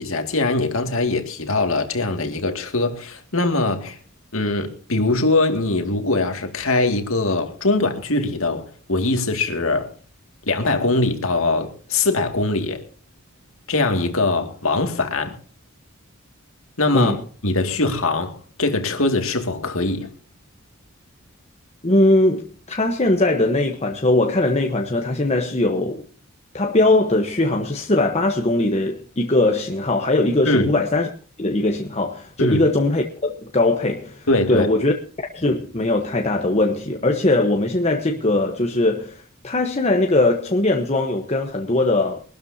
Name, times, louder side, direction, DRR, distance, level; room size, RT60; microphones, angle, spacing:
voice 1, 0.0-4.0 4.3-9.9 10.5-12.8 13.7-15.4 16.8-20.1 30.5-30.8 32.4-32.6 34.3-34.7, left 2 dB, 75° left, 2.3 m, -22 dB
voice 2, 21.8-26.0 26.5-31.1 31.4-34.9 35.3-42.2, left 2 dB, 30° left, 1.1 m, -20 dB
23.0 x 12.5 x 2.8 m
head